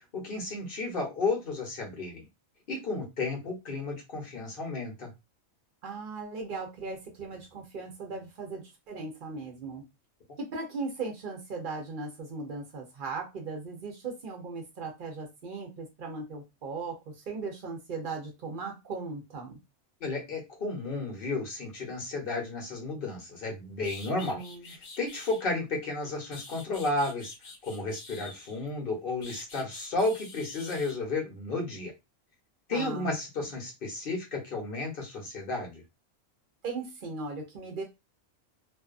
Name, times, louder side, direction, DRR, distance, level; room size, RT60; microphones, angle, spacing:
voice 1, 0.1-2.3 2.7-5.1 20.0-24.4 25.0-27.3 27.6-31.9 32.7-35.8, left 3 dB, 45° left, 1 dB, 1.0 m, -33 dB
voice 2, 5.8-9.8 10.5-19.6 24.1-24.7 32.7-33.1 36.6-37.8, right 4 dB, 50° right, 1 dB, 0.7 m, -38 dB
sound 1, 23.4-23.5 23.8-25.4 26.0-28.7 29.2-31.0, left 3 dB, 70° left, 1.1 m, -47 dB
2.6 x 2.4 x 2.4 m, 0.23 s
omnidirectional pair, 1.3 m